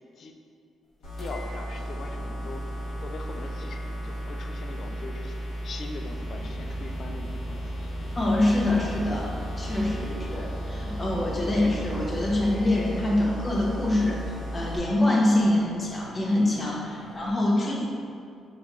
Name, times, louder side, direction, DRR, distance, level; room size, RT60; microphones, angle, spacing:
sound 1, 1.0-14.8, right 1 dB, 90° left, 1.3 m, -34 dB
sound 2, 1.1-17.3, left 3 dB, 15° left, 1.2 m, -49 dB
voice 1, 1.2-8.2 9.7-10.4 10.7-10.8 11.4-11.5 17.6-17.8, left 3 dB, 55° left, 4 dB, 0.4 m, -42 dB
sound 3, 6.0-12.5, equal, 70° left, 1.1 m, -41 dB
voice 2, 8.1-18.0, left 1 dB, 30° left, -3 dB, 0.8 m, -25 dB
5.0 x 3.2 x 2.4 m, 2.4 s
cardioid pair, 90°, 0 cm